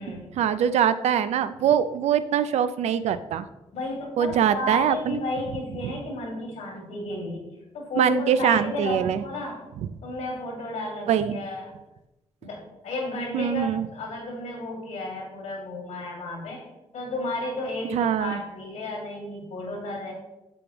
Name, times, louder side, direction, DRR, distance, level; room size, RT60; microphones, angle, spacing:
voice 1, 0.3-3.5 4.2-5.2 8.0-9.2 11.1-11.4 13.3-13.8 17.9-18.4, right 9 dB, 80° right, 13 dB, 0.5 m, -23 dB
voice 2, 3.7-7.5 7.7-9.6 10.0-11.7 12.4-16.7 16.9-20.1, left 2 dB, 85° left, 0 dB, 2.2 m, -33 dB
7.0 x 7.0 x 3.0 m, 0.97 s
cardioid pair, 85°, 11 cm